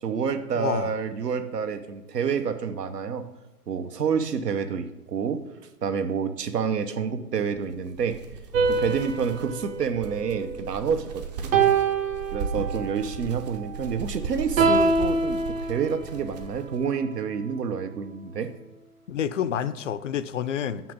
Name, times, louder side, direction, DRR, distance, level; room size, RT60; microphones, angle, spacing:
voice 1, 0.0-3.3 3.7-5.5 5.8-8.2 8.7-11.5 12.3-15.4 15.7-18.5, right 6 dB, 80° right, 10 dB, 1.0 m, -28 dB
voice 2, 0.5-0.9 19.1-20.9, left 8 dB, 55° left, 14 dB, 0.5 m, -29 dB
sound 1, 7.6-16.8, right 4 dB, 25° right, 0.6 m, -38 dB
sound 2, 8.5-11.0 11.5-13.0 14.6-16.3, right 4 dB, 55° right, 1.3 m, -25 dB
6.1 x 5.9 x 7.1 m, 1.1 s
hypercardioid pair, 140°, 48 cm